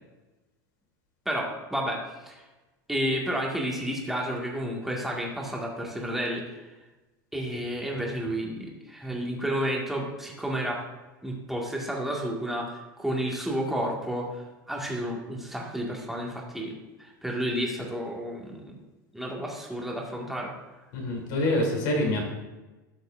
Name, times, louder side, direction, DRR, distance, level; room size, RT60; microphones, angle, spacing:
voice 1, 1.3-2.4 2.9-6.6 7.3-10.8 11.2-18.7 19.1-20.5, equal, ahead, -2 dB, 1.9 m, -31 dB
voice 2, 20.9-22.2, left 1 dB, 60° left, -1 dB, 3.1 m, -26 dB
12.5 x 6.6 x 2.6 m, 1.1 s
hypercardioid pair, 95°, 11 cm